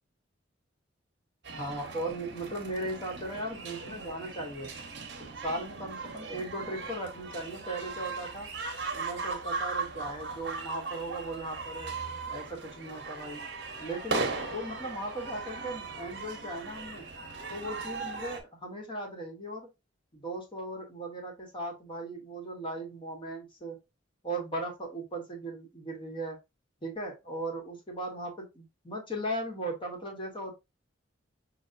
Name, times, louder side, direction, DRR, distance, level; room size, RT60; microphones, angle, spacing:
sound 1, 1.4-18.4, right 4 dB, 70° right, 0.8 m, -38 dB
voice 1, 1.6-4.7 5.2-8.5 8.9-11.9 12.3-13.4 13.8-17.0 17.5-19.7 20.1-23.8 24.2-26.4 26.8-30.5, right 1 dB, 30° left, 1 dB, 1.1 m, -37 dB
5.5 x 2.3 x 2.5 m, 0.24 s
head